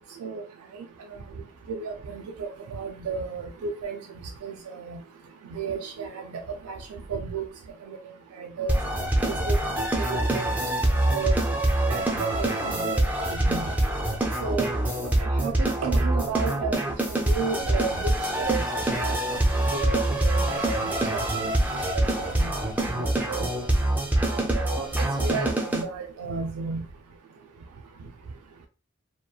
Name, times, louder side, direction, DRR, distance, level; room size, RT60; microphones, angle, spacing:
voice 1, 1.7-4.0 4.4-5.0 5.5-6.2 6.6-6.8 7.1-7.4 7.9-8.0 8.4-8.8 9.5-9.6 10.0-10.5 11.1-11.3 11.9-13.7 14.4-14.8 15.2-16.8 17.1-18.6 18.9-19.4 19.7-20.8 21.3-21.4 21.9-22.5 22.8-23.5 24.3-24.9 25.2-26.8, right 5 dB, 90° right, 4 dB, 0.3 m, -33 dB
sound 1, 8.7-25.8, right 1 dB, 5° right, 0.4 m, -25 dB
2.9 x 2.2 x 2.2 m, 0.36 s
head